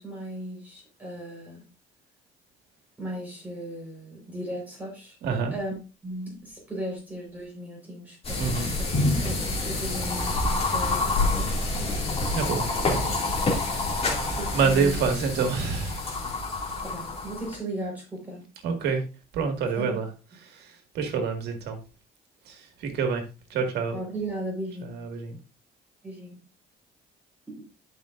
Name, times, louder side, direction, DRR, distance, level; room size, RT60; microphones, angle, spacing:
voice 1, 0.0-1.6 3.0-5.2 5.5-5.7 6.0-8.9 9.2-12.0 14.3-14.9 16.8-18.4 19.7-19.9 23.9-25.0 26.0-26.4 27.5-27.6, right 1 dB, 10° right, -3 dB, 4.2 m, -36 dB
voice 2, 5.2-5.5 8.4-8.7 12.3-13.2 13.6-16.2 18.6-19.0 19.3-20.1 20.4-21.8 22.5-23.2 23.5-24.0 24.8-25.4, right 5 dB, 75° right, 5 dB, 1.8 m, -28 dB
sound 1, 8.2-17.6, left 2 dB, 35° left, 2.3 m, -27 dB
11.5 x 5.3 x 2.5 m, 0.31 s
cardioid pair, 110°, 17 cm